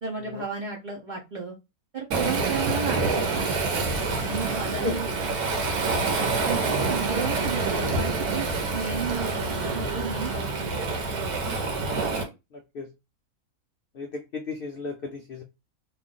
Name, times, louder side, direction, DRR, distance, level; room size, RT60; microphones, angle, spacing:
voice 1, 0.0-1.5 1.9-3.6 4.2-5.1 6.4-8.4 8.7-11.0, right 5 dB, 50° right, -1 dB, 0.5 m, -33 dB
Waves surf, 2.1-12.2, right 3 dB, 80° right, 1.3 m, -27 dB
voice 2, 6.1-6.5 11.8-12.2 12.5-12.9 13.9-15.4, left 3 dB, 85° left, 3 dB, 0.5 m, -35 dB
3.1 x 2.4 x 3.7 m, 0.25 s
omnidirectional pair, 1.6 m